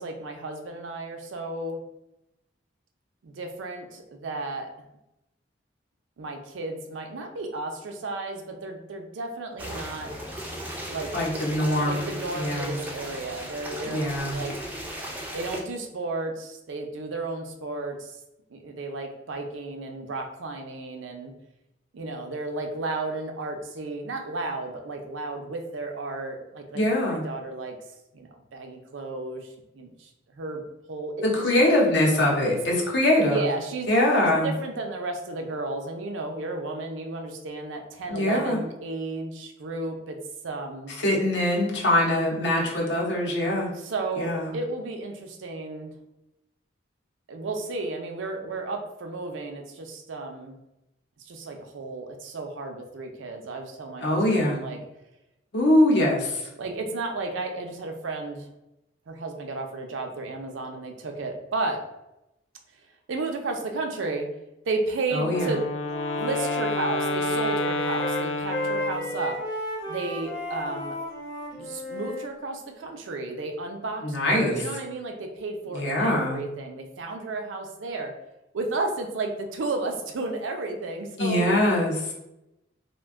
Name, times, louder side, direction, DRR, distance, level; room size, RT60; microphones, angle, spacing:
voice 1, 0.0-1.8 3.2-4.7 6.2-10.1 10.9-11.1 11.8-14.0 14.3-14.6 15.3-18.1 18.5-21.3 21.9-26.8 27.1-27.8 28.1-30.6 30.9-31.6 32.4-32.6 33.3-33.9 34.2-40.2 40.4-40.9 43.7-45.9 47.3-50.6 51.3-54.8 56.6-58.5 59.1-61.8 63.1-64.3 64.7-65.6 66.1-69.4 69.9-71.0 71.5-78.1 78.5-81.5, right 3 dB, 80° right, 3 dB, 0.5 m, -33 dB
sound 1, 9.6-15.6, equal, 10° right, 0.3 m, -36 dB
voice 2, 11.1-12.0 12.3-12.8 13.8-14.3 26.7-27.2 31.2-33.4 33.9-34.5 38.1-38.6 41.0-43.7 44.2-44.5 54.0-54.6 55.5-56.4 65.1-65.5 74.0-74.6 75.7-76.4 81.2-82.0, left 1 dB, 60° left, -1 dB, 0.7 m, -23 dB
Wind instrument woodwind instrument, 65.0-65.4 65.7-72.3, left 1 dB, 20° left, 0.7 m, -33 dB
Wind instrument woodwind instrument 2, 65.2-69.4, left 2 dB, 80° left, 0.3 m, -30 dB
2.5 x 2.2 x 3.5 m, 0.90 s
head